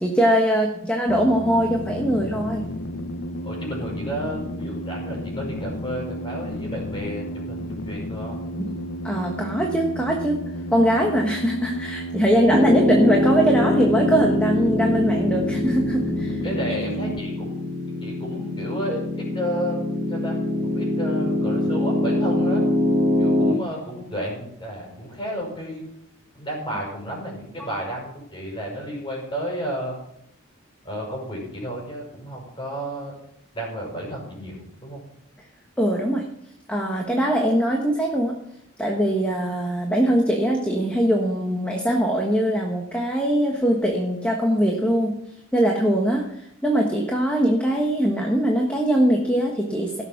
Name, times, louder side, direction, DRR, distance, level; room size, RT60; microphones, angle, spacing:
voice 1, 0.0-2.6 8.6-10.4 10.7-16.4 27.6-27.7 35.8-36.2 36.7-38.4 38.8-45.1 45.5-50.0, equal, 5° left, 0 dB, 1.4 m, -22 dB
sound 1, 1.1-17.2, equal, 55° left, 0.7 m, -32 dB
voice 2, 3.4-8.4 16.4-17.5 18.0-22.6 23.2-25.8 26.3-29.9 30.8-33.1 33.5-35.0, equal, 20° left, -1 dB, 5.6 m, -32 dB
Piano, 12.5-23.5, left 1 dB, 25° right, 1.3 m, -23 dB
17.0 x 7.0 x 6.0 m, 0.76 s
head